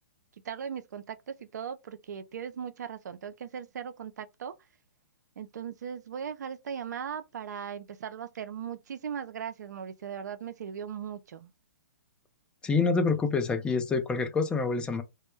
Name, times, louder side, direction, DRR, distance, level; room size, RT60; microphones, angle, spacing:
voice 1, 0.4-4.5 5.4-11.5, right 8 dB, 75° right, 0.4 m, -38 dB
voice 2, 12.6-15.0, left 4 dB, 10° left, 0.4 m, -27 dB
2.2 x 2.0 x 3.0 m
hypercardioid pair, 135°, 9 cm